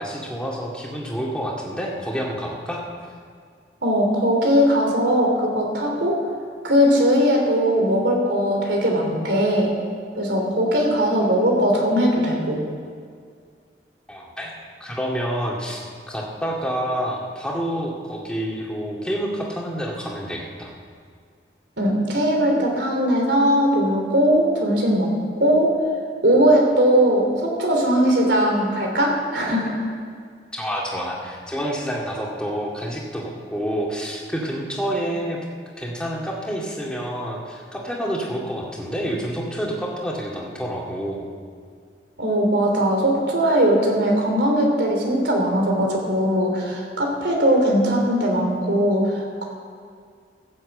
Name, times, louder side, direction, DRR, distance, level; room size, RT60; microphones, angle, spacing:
voice 1, 0.0-2.8 14.1-14.5 14.8-20.7 30.5-35.4 35.8-41.2, equal, 5° left, -3 dB, 2.1 m, -28 dB
voice 2, 3.8-6.2 6.6-9.7 10.2-12.6 21.8-25.1 25.4-25.7 26.2-29.7 42.2-49.4, equal, 80° right, 1 dB, 3.1 m, -19 dB
15.0 x 7.7 x 7.9 m, 2.1 s
head